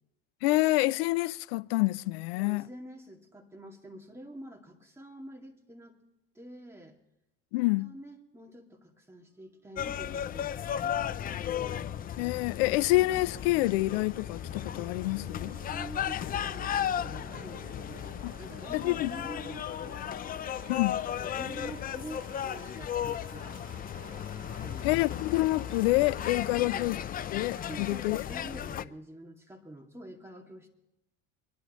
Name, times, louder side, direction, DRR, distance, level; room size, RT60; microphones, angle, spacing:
voice 1, 0.4-2.7 7.5-7.9 12.2-15.6 18.2-18.3 18.7-19.1 20.7-21.0 24.8-27.0 27.3-28.2, left 20 dB, 85° left, 0.5 m, -27 dB
voice 2, 2.4-6.0 6.3-7.0 7.8-11.6 15.5-20.0 21.2-23.6 24.5-25.0 26.5-26.9 27.7-30.7, right 1 dB, 10° right, 2.3 m, -47 dB
sound 1, 9.4-27.7, right 9 dB, 50° right, 1.2 m, -53 dB
sound 2, 9.8-28.9, left 10 dB, 30° left, 0.5 m, -35 dB
25.5 x 11.5 x 3.1 m
supercardioid pair, 115°, 29 cm